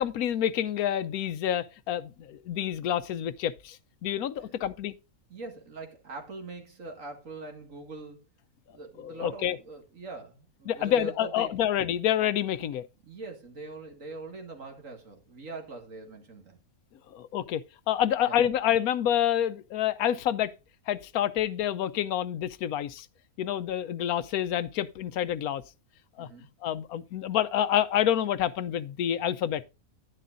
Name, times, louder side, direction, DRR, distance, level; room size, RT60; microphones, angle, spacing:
voice 1, 0.0-3.8 4.0-4.9 9.0-9.6 10.7-12.9 17.1-17.6 17.9-20.5 20.9-23.1 23.4-25.6 26.2-26.3 26.6-29.6, left 10 dB, 85° left, 1.1 m, -28 dB
voice 2, 5.3-8.2 8.7-11.6 13.0-16.6 18.2-18.4 26.2-26.5, right 3 dB, 60° right, 2.4 m, -42 dB
11.0 x 10.0 x 2.5 m
omnidirectional pair, 1.5 m